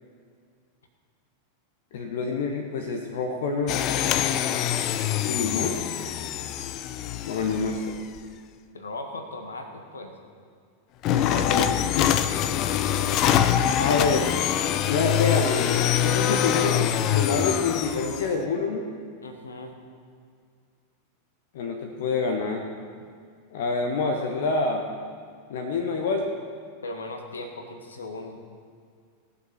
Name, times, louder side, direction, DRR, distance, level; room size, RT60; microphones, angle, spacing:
voice 1, 1.9-4.1 5.2-5.8 7.2-7.8 11.1-12.2 13.8-14.3 14.9-18.9 21.5-22.7 23.5-24.9 25.5-26.3, left 4 dB, 55° left, 3 dB, 1.2 m, -27 dB
sound 1, 3.7-8.2 11.0-18.3, left 10 dB, 40° left, 0.6 m, -24 dB
voice 2, 8.7-10.1 19.2-19.7 26.8-28.4, left 2 dB, 70° left, 5 dB, 1.5 m, -37 dB
18.5 x 7.3 x 5.7 m, 2.1 s
figure-of-eight pair, 90°, 0 cm